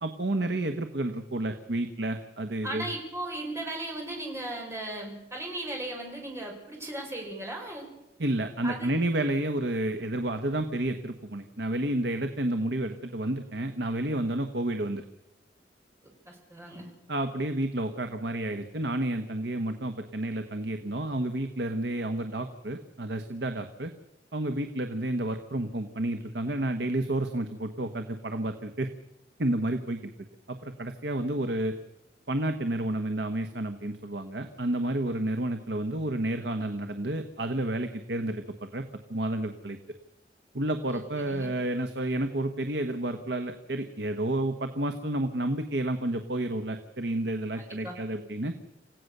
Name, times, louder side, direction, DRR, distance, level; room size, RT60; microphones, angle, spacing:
voice 1, 0.0-2.9 8.2-15.0 17.1-23.9 24.3-28.9 29.4-30.1 30.5-31.8 32.3-38.4 38.7-38.8 39.1-39.8 40.5-48.5, right 1 dB, 70° right, 7 dB, 1.2 m, -30 dB
voice 2, 2.6-7.9 8.6-8.9 16.3-16.9 40.8-41.5 47.6-48.0, right 1 dB, 15° right, 0 dB, 5.4 m, -37 dB
27.5 x 16.0 x 6.7 m, 0.93 s
head